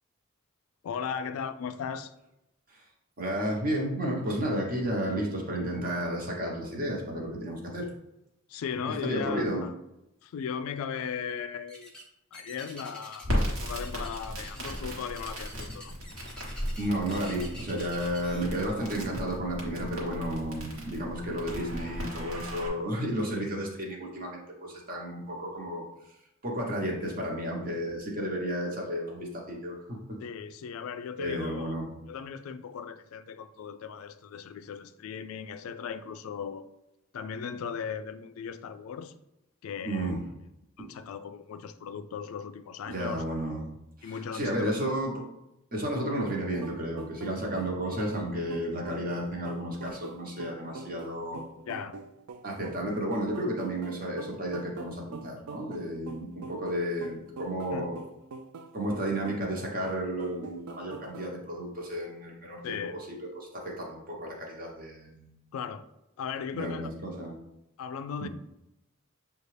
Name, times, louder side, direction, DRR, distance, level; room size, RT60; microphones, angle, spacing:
voice 1, 0.8-2.1 8.5-9.7 10.2-11.9 12.3-16.0 30.2-31.8 32.1-36.7 37.1-39.2 39.6-40.2 40.8-43.2 44.0-44.7 51.7-52.0 57.7-57.9 62.6-63.0 65.5-65.9 66.2-66.9 67.8-68.3, left 7 dB, 75° left, 11 dB, 0.3 m, -37 dB
voice 2, 3.2-7.9 8.9-9.6 16.4-25.8 26.4-30.2 31.2-31.9 39.8-40.2 40.8-40.9 42.8-43.6 44.0-45.2 45.7-51.4 52.4-58.0 58.7-63.0 63.3-65.3 66.5-67.3 68.2-68.3, right 1 dB, 45° right, 0 dB, 1.0 m, -32 dB
sound 1, 11.7-12.1 12.3-13.6 13.8-18.4, left 1 dB, 5° left, 0.7 m, -47 dB
Crackle, 13.2-22.7, equal, 65° right, 1.2 m, -36 dB
sound 2, 46.3-61.4, right 4 dB, 85° right, 0.4 m, -45 dB
6.5 x 2.3 x 3.2 m, 0.88 s
head